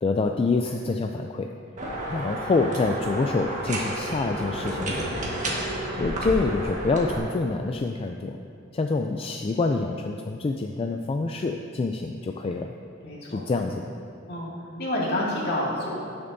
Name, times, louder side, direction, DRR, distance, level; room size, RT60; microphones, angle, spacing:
voice 1, 0.0-1.5 2.0-5.2 6.0-8.4 8.7-12.7 13.3-13.8, left 3 dB, 30° left, 4 dB, 0.3 m, -26 dB
sound 1, 1.8-7.2, right 1 dB, 40° right, 1.4 m, -31 dB
voice 2, 13.0-13.4 14.3-14.5 14.8-15.9, left 1 dB, 55° left, -5 dB, 2.2 m, -28 dB
17.0 x 7.0 x 2.7 m, 2.5 s
head